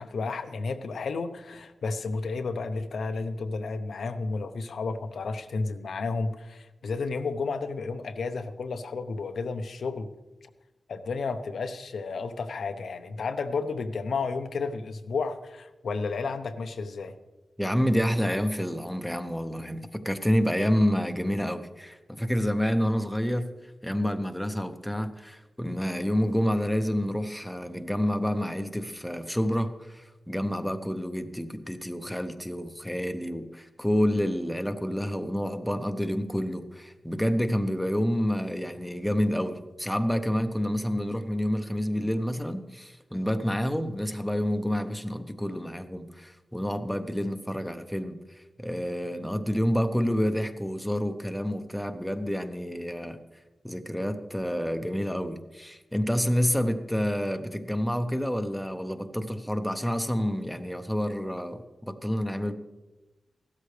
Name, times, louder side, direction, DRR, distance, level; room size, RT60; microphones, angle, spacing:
voice 1, 0.0-10.1 10.9-17.2, left 4 dB, 85° left, 8 dB, 0.7 m, -32 dB
voice 2, 17.6-23.5 23.8-53.2 53.6-62.5, equal, 5° left, 7 dB, 0.6 m, -28 dB
15.5 x 13.0 x 3.3 m, 1.1 s
wide cardioid pair, 165°, 0 cm